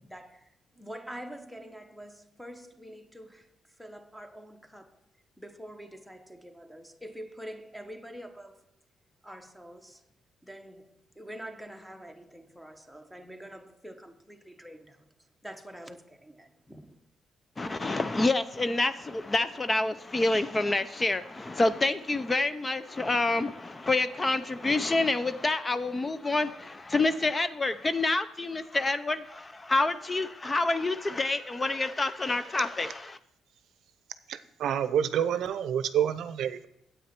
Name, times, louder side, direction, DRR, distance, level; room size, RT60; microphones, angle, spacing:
voice 1, 0.0-5.0 5.4-8.7 9.2-10.0 10.4-15.1 15.4-17.1, equal, ahead, 1.0 m, -46 dB
voice 2, 17.6-33.2, left 2 dB, 25° left, 0.5 m, -28 dB
voice 3, 34.3-36.7, right 9 dB, 75° right, 0.6 m, -28 dB
9.0 x 8.4 x 4.4 m
cardioid pair, 90°, 0 cm